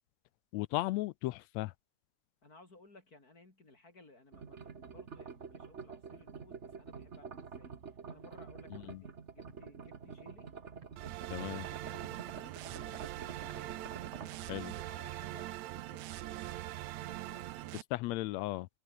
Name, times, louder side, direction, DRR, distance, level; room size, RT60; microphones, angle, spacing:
voice 1, 0.5-1.7 8.7-9.0 11.3-11.7 14.5-14.7 17.9-18.7, left 18 dB, 80° left, 1.7 m, -36 dB
voice 2, 2.4-7.7 8.1-10.5 11.2-13.9 14.4-16.6 17.1-18.2, left 2 dB, 30° left, 4.3 m, -59 dB
sound 1, 4.3-14.4, right 5 dB, 40° right, 1.1 m, -48 dB
Walk footsteps, 8.8-8.9 9.4-9.6 10.1-10.2 10.8-10.9 11.4-11.6 12.1-12.2 12.7-12.9 13.5-13.6, right 3 dB, 55° right, 7.1 m, -58 dB
sound 2, 11.0-17.8, right 15 dB, 75° right, 2.1 m, -42 dB
omnidirectional pair, 3.4 m